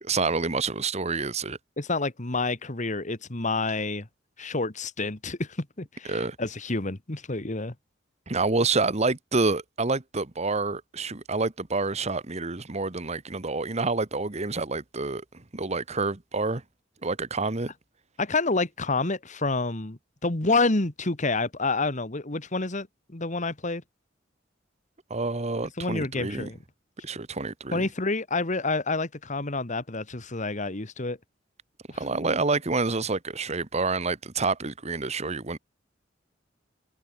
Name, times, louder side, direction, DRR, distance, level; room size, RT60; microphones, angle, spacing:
voice 1, 0.0-1.6 6.1-6.4 8.3-16.6 17.0-17.7 25.1-26.5 27.0-27.9 31.9-35.6, right 3 dB, 35° right, 1.3 m, -28 dB
voice 2, 1.8-4.1 4.4-7.7 18.2-23.8 25.8-26.6 27.7-31.2 31.9-32.0, left 3 dB, 40° left, 1.9 m, -28 dB
head